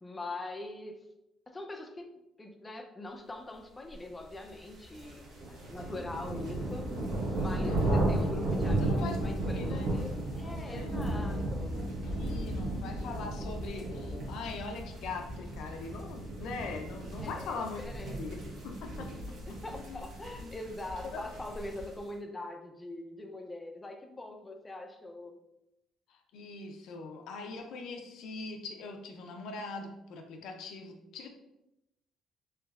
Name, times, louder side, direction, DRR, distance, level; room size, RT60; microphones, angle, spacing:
voice 1, 0.0-1.0 1.5-2.1 2.4-6.9 7.3-11.7 17.2-18.3 19.5-25.4, left 2 dB, 20° left, 4 dB, 0.3 m, -43 dB
sound 1, 4.5-22.0, right 1 dB, 80° right, 1.1 m, -34 dB
voice 2, 8.8-9.2 9.4-10.0 10.7-11.0 11.6-17.8 18.2-20.0 20.4-20.5 21.0-21.2 26.1-31.3, left 3 dB, 75° left, 4 dB, 0.5 m, -42 dB
3.4 x 3.0 x 2.3 m, 0.88 s
cardioid pair, 120°, 0 cm